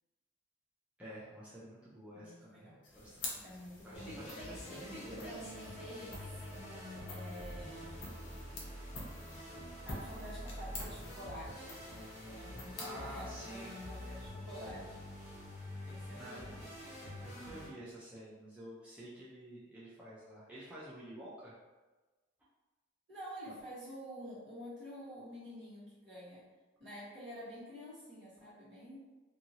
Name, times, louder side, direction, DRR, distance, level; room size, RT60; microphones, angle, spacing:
voice 1, 1.0-3.4 3.8-5.2 12.8-13.8 16.1-16.4 17.2-21.5, right 1 dB, 5° right, -9 dB, 0.4 m, -49 dB
voice 2, 2.1-2.8 3.4-4.2 4.7-6.4 7.1-8.1 9.8-11.8 12.2-15.0 15.9-16.6 23.1-26.5 26.8-29.0, equal, 60° right, -9 dB, 1.3 m, -49 dB
sound 1, 2.8-14.5, left 2 dB, 70° left, 0.7 m, -50 dB
sound 2, 3.9-17.7, left 1 dB, 35° left, 1.0 m, -46 dB
2.7 x 2.6 x 2.9 m, 1.2 s
head